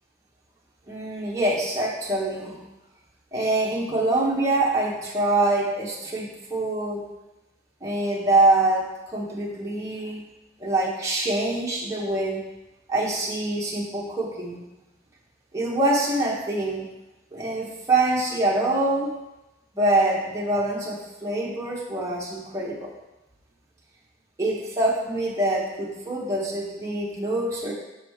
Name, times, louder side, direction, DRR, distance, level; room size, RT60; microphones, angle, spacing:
voice 1, 0.9-2.6 3.3-7.0 7.8-10.2 10.6-12.4 12.9-14.6 15.5-16.9 17.3-19.1 19.7-22.9 24.4-27.7, right 2 dB, 15° right, -5 dB, 0.9 m, -25 dB
6.2 x 4.8 x 3.5 m, 0.99 s
head